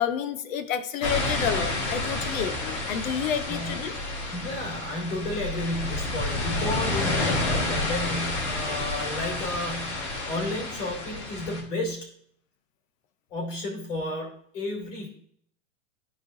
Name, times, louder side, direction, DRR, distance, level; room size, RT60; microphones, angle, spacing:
voice 1, 0.0-3.9, left 8 dB, 90° left, 10 dB, 1.0 m, -29 dB
sound 1, 1.0-11.6, left 2 dB, 55° left, 2.7 m, -30 dB
voice 2, 3.4-3.8 4.3-12.1 13.3-15.1, left 2 dB, 70° left, -2 dB, 2.9 m, -32 dB
12.5 x 4.6 x 2.7 m, 0.63 s
supercardioid pair, 180°, 39 cm